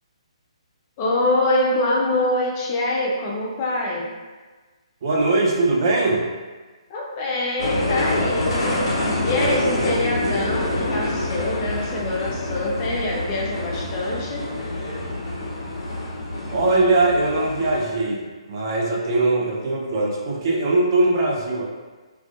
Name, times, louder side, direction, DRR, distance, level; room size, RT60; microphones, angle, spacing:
voice 1, 1.0-4.1 6.9-8.8 9.2-14.5, left 1 dB, 25° left, -3 dB, 0.4 m, -24 dB
voice 2, 5.0-6.3 16.5-21.7, right 2 dB, 40° right, -2 dB, 0.4 m, -21 dB
sound 1, 7.6-17.8, left 1 dB, 50° left, 0.8 m, -26 dB
2.4 x 2.2 x 2.3 m, 1.3 s
figure-of-eight pair, 135°, 3 cm